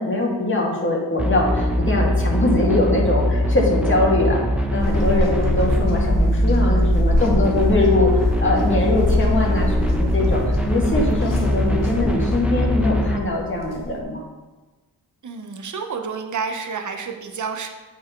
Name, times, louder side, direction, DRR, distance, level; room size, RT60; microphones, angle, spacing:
voice 1, 0.0-4.4 4.7-14.2, left 2 dB, 30° left, -3 dB, 2.1 m, -22 dB
sound 1, 1.2-13.2, equal, 5° right, 1.0 m, -21 dB
sound 2, 4.8-14.0, left 1 dB, 50° left, 1.3 m, -27 dB
voice 2, 15.2-17.7, right 5 dB, 45° right, 5 dB, 0.9 m, -29 dB
8.1 x 4.6 x 4.6 m, 1.2 s
cardioid pair, 65°, 40 cm